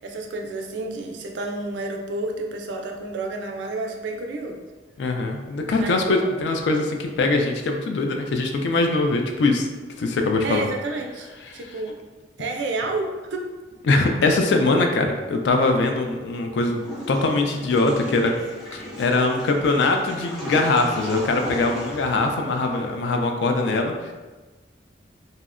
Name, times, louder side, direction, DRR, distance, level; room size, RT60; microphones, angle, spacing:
voice 1, 0.0-4.6 5.8-6.3 10.4-12.0 12.4-13.4, right 2 dB, 75° right, 2 dB, 0.4 m, -30 dB
voice 2, 5.0-9.7 10.0-10.7 11.5-11.6 13.9-16.8 17.1-18.3 18.7-23.9, left 3 dB, 70° left, 4 dB, 0.3 m, -22 dB
Water / Toilet flush, 16.8-23.0, left 1 dB, ahead, 0.6 m, -36 dB
2.7 x 2.1 x 2.4 m, 1.2 s
head